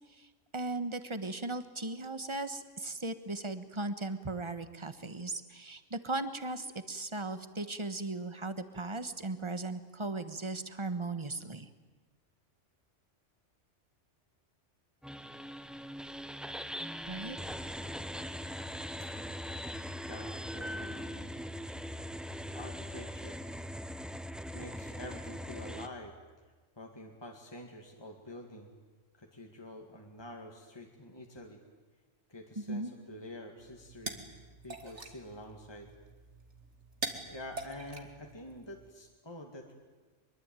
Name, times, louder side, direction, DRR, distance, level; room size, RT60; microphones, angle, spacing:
voice 1, 0.1-11.7 17.1-17.4 32.6-32.9, right 2 dB, 25° right, 10 dB, 1.4 m, -37 dB
sound 1, 15.0-25.9, equal, ahead, 0.7 m, -41 dB
voice 2, 20.0-21.3 22.5-23.4 24.5-26.1 26.8-28.7 29.1-31.6 32.3-34.2 34.6-35.9 37.0-39.8, left 1 dB, 20° left, 2 dB, 2.2 m, -47 dB
sound 2, 33.6-38.9, right 3 dB, 70° right, 2.4 m, -44 dB
23.5 x 23.0 x 9.1 m, 1.3 s
omnidirectional pair, 1.2 m